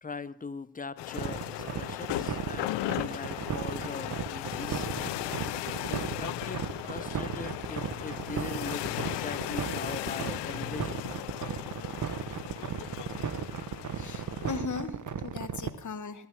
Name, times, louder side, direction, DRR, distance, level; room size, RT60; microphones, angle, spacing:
voice 1, 0.0-4.9 5.8-11.1, left 4 dB, 20° left, 0.8 m, -41 dB
sound 1, 1.0-14.6, left 17 dB, 80° left, 0.6 m, -37 dB
sound 2, 1.2-15.7, right 8 dB, 45° right, 1.1 m, -35 dB
voice 2, 13.9-16.3, left 5 dB, 45° left, 1.6 m, -38 dB
20.5 x 7.1 x 7.3 m
supercardioid pair, 60°, 42 cm